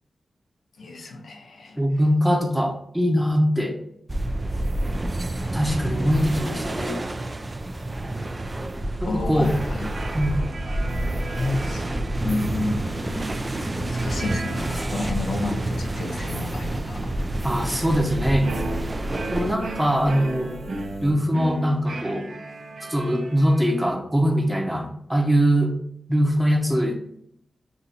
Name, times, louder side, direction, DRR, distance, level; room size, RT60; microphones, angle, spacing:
voice 1, 0.8-1.8 9.0-9.9 11.2-11.8 12.2-12.8 13.7-17.1, left 2 dB, 80° left, 2 dB, 0.7 m, -30 dB
voice 2, 1.8-3.8 5.5-7.0 9.0-9.6 10.1-10.3 17.4-18.5 19.3-20.5 21.0-22.3 22.9-25.8 26.1-27.0, equal, 5° right, 3 dB, 0.8 m, -22 dB
sound 1, 4.1-19.6, right 1 dB, 30° right, 0.4 m, -29 dB
sound 2, 9.9-23.9, right 2 dB, 75° right, 0.7 m, -36 dB
sound 3, 12.1-21.1, right 1 dB, 60° right, 1.1 m, -41 dB
7.0 x 2.6 x 2.7 m, 0.71 s
cardioid pair, 75°, 0 cm